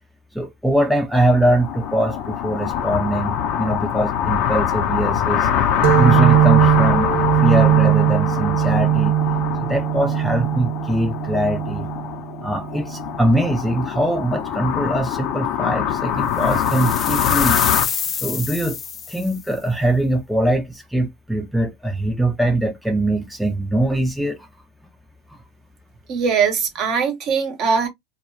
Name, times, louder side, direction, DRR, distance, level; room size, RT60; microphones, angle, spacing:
voice 1, 0.3-5.7 5.9-9.2 9.6-11.9 12.4-17.6 18.2-18.8 19.1-24.5 25.3-25.4, right 1 dB, ahead, 0.6 m, -22 dB
sound 1, 1.1-17.9, left 9 dB, 55° left, 0.7 m, -24 dB
sound 2, 5.8-13.1, right 12 dB, 70° right, 0.5 m, -19 dB
sound 3, 16.4-19.4, left 7 dB, 35° left, 0.3 m, -26 dB
voice 2, 26.1-27.9, right 6 dB, 50° right, 1.0 m, -21 dB
2.4 x 2.3 x 3.1 m
hypercardioid pair, 105°, 0 cm